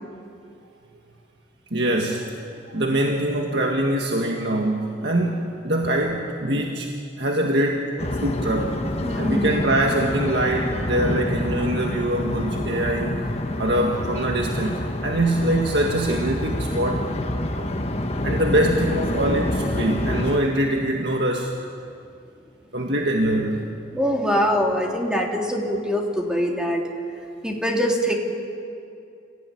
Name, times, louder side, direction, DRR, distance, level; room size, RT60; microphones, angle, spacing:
voice 1, 1.7-6.9 7.2-8.8 9.2-13.2 13.6-17.1 17.6-17.7 18.2-21.5 22.7-23.8, right 1 dB, 60° right, 1 dB, 1.9 m, -23 dB
sound 1, 8.0-20.4, left 1 dB, 35° left, 1.5 m, -27 dB
voice 2, 9.0-9.6 23.9-26.8 27.4-28.1, equal, 5° right, 0 dB, 3.0 m, -23 dB
28.5 x 16.5 x 9.9 m, 2.5 s
head